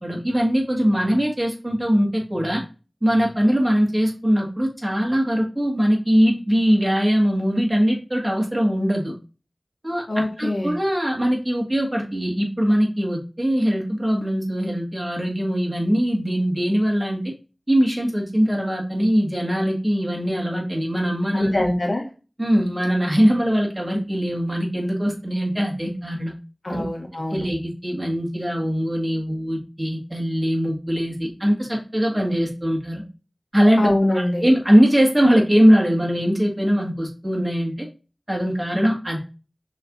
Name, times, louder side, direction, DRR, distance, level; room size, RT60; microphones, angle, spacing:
voice 1, 0.0-2.6 3.0-9.1 9.8-17.3 17.7-21.7 22.4-26.3 26.7-26.8 27.3-33.0 33.5-33.9 34.4-37.9 38.3-39.2, equal, 25° right, -2 dB, 1.9 m, -21 dB
voice 2, 10.1-10.7 21.3-22.0 26.6-27.5 33.8-34.4, left 1 dB, 85° left, 1 dB, 1.3 m, -23 dB
6.2 x 3.2 x 2.6 m, 0.33 s
wide cardioid pair, 45°, 0 cm